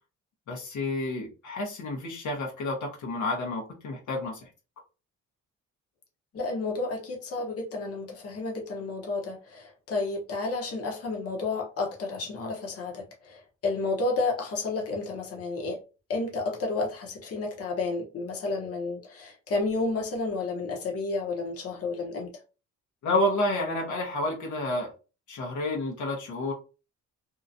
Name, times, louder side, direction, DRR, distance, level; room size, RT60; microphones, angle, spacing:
voice 1, 0.5-4.4 23.0-24.9 25.3-26.5, left 1 dB, 70° left, 1.0 m, -30 dB
voice 2, 6.3-15.8 16.1-22.3, left 3 dB, 50° left, 1.0 m, -31 dB
2.8 x 2.4 x 2.6 m
cardioid pair, 90°, 30 cm